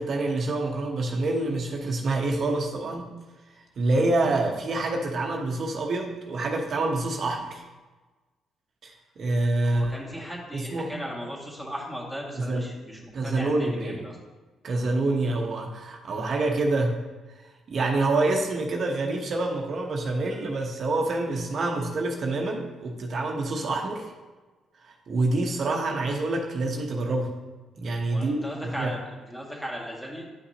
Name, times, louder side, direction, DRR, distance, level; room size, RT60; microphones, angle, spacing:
voice 1, 0.0-3.1 3.6-7.6 8.8-9.9 10.5-10.9 12.4-12.6 13.1-14.0 14.6-17.0 17.4-24.1 24.8-27.3 27.8-28.5 28.7-28.9, right 2 dB, 55° right, 1 dB, 0.9 m, -27 dB
voice 2, 9.6-14.2 28.1-30.3, equal, 10° left, -3 dB, 2.0 m, -37 dB
10.0 x 5.7 x 2.9 m, 1.2 s
cardioid pair, 90°, 0 cm